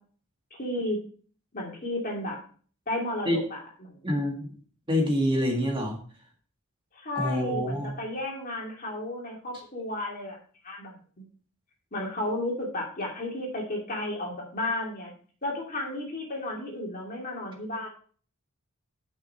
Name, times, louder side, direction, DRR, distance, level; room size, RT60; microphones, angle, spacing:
voice 1, 0.5-1.0 1.5-2.4 2.9-4.2 6.9-10.4 10.6-11.2 11.9-15.1 15.4-17.9, left 1 dB, 40° left, -1 dB, 2.6 m, -33 dB
voice 2, 4.0-4.5 4.9-6.0 7.1-7.9, equal, 20° right, 1 dB, 1.7 m, -26 dB
11.0 x 5.8 x 4.3 m, 0.43 s
head